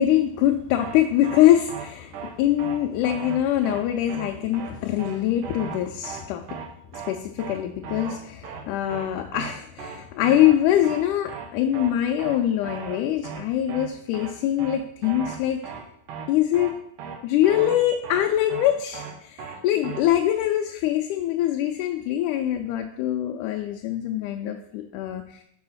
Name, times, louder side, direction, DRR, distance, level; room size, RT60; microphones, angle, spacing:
voice 1, 0.0-2.1 2.4-6.4 7.1-15.6 16.3-16.7 17.2-25.4, left 12 dB, 85° left, 3 dB, 2.0 m, -23 dB
sound 1, 0.8-1.0 1.2-1.4 1.7-1.9 2.1-2.3 2.6-2.8 3.0-3.4 3.6-3.8 4.1-4.3 4.5-4.7 5.0-5.2 5.4-5.8 6.0-6.2 6.5-6.7 6.9-7.1 7.4-7.6 7.8-8.2 8.4-8.6 8.9-9.1 9.3-9.5 9.8-10.0 10.2-10.6 10.8-11.0 11.3-11.5 11.7-11.9 12.2-12.4 12.6-13.0 13.2-13.4 13.7-13.9 14.1-14.3 14.6-14.8 15.0-15.4 15.6-15.8 16.1-16.3 16.5-16.7 17.0-17.2 17.4-17.8 18.0-18.2 18.5-18.7 18.9-19.1 19.4-19.6 19.8-20.0, right 7 dB, 80° right, 2.5 m, -36 dB
6.1 x 4.8 x 5.6 m, 0.72 s
omnidirectional pair, 3.6 m